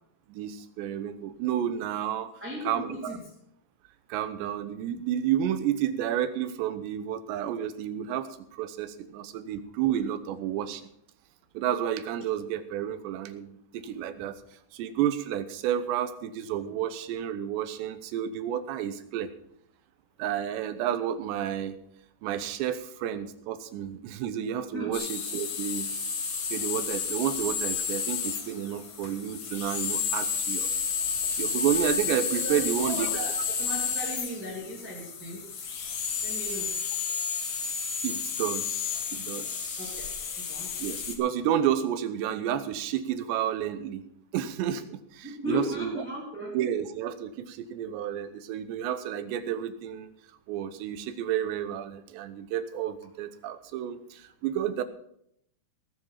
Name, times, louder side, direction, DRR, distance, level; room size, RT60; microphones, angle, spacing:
voice 1, 0.3-2.3 2.7-3.2 4.1-10.9 11.5-14.4 14.7-19.3 20.2-21.8 22.2-25.9 26.5-30.7 31.4-33.1 38.0-40.1 40.8-44.0 44.3-46.0 46.5-50.1 50.5-54.8, right 10 dB, 85° right, 11 dB, 3.1 m, -31 dB
voice 2, 2.4-3.2 24.7-24.9 32.4-35.5 36.2-36.7 39.8-40.1 40.4-40.8 45.2-46.6, equal, 5° right, -3 dB, 1.8 m, -36 dB
sound 1, 24.9-41.1, left 6 dB, 65° left, 1.5 m, -31 dB
19.0 x 7.1 x 5.7 m, 0.73 s
omnidirectional pair, 5.0 m